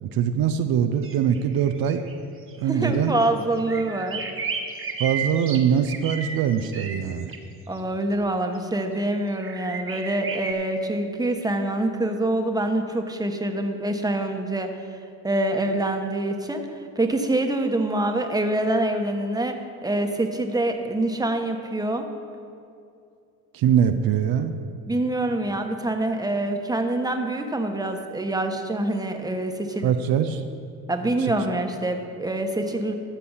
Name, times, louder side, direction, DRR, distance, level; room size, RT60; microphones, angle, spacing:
voice 1, 0.0-2.0 2.6-3.1 5.0-7.3 23.5-24.5 29.8-30.4 31.0-31.4, right 8 dB, 60° right, 8 dB, 0.7 m, -23 dB
sound 1, 1.0-2.1 2.5-2.6 3.0-3.3 3.5-7.4 8.6-8.7 9.4-10.5, right 5 dB, 30° right, 1.5 m, -33 dB
voice 2, 2.7-4.2 7.7-14.7 15.2-16.6 17.0-19.6 19.8-22.0 24.9-29.9 30.9-32.9, right 1 dB, 10° right, 5 dB, 1.3 m, -25 dB
13.5 x 6.8 x 5.7 m, 2.5 s
supercardioid pair, 80°, 40 cm